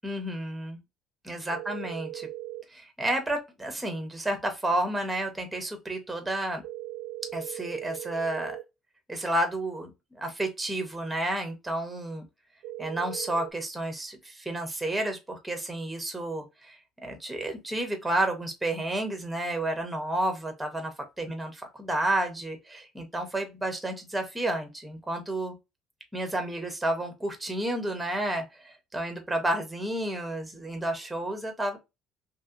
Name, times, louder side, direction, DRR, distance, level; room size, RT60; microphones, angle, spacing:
voice 1, 0.0-0.8 1.2-2.3 2.7-6.6 7.3-8.6 9.1-12.2 12.8-20.9 21.2-25.5 26.1-31.8, right 1 dB, 5° right, 0.6 m, -31 dB
sound 1, 1.5-2.6 6.6-8.6 12.6-13.5, right 14 dB, 85° right, 0.4 m, -38 dB
2.9 x 2.7 x 2.3 m
cardioid pair, 170°, 0 cm